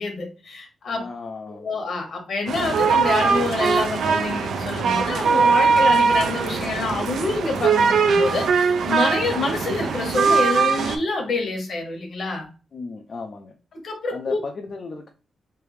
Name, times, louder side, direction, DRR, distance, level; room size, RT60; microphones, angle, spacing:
voice 1, 0.0-1.0 1.5-12.5 13.8-14.4, left 3 dB, 60° left, 3 dB, 1.1 m, -27 dB
voice 2, 0.9-1.7 12.7-13.5 14.1-15.1, left 4 dB, 45° left, 2 dB, 0.4 m, -35 dB
sound 1, 2.5-11.0, right 5 dB, 90° right, 0.4 m, -21 dB
3.3 x 2.6 x 3.1 m, 0.34 s
wide cardioid pair, 135°, 0 cm